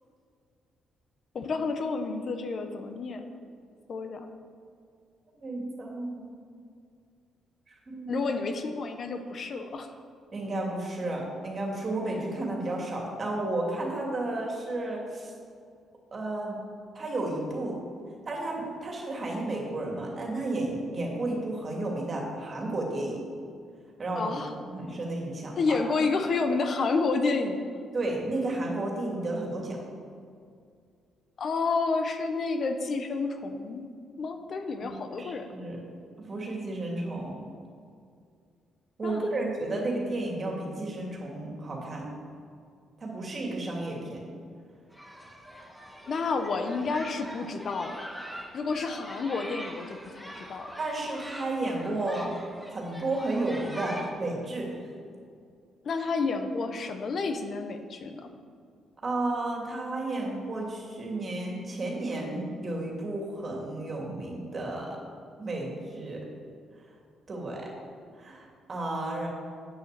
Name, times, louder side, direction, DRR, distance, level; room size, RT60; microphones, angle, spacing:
voice 1, 1.3-3.2 3.9-4.3 8.1-9.9 24.2-24.5 25.6-27.6 31.4-33.9 34.2-35.5 39.0-39.5 46.1-48.1 48.5-49.9 50.1-50.7 55.8-58.3, left 4 dB, 55° left, 6 dB, 0.8 m, -30 dB
voice 2, 5.4-6.3 7.7-8.3 10.3-15.3 16.1-16.6 16.9-17.8 18.3-23.2 24.0-24.4 24.6-25.8 27.9-29.8 34.8-34.9 35.2-35.8 36.2-37.4 39.0-42.1 43.0-44.2 50.8-52.4 52.7-54.8 59.0-65.0 65.4-66.3 67.3-67.7 68.2-69.3, right 2 dB, 40° right, -1 dB, 2.5 m, -32 dB
sound 1, 44.9-54.1, equal, ahead, 1.4 m, -43 dB
8.6 x 6.9 x 6.7 m, 2.3 s
cardioid pair, 90°, 0 cm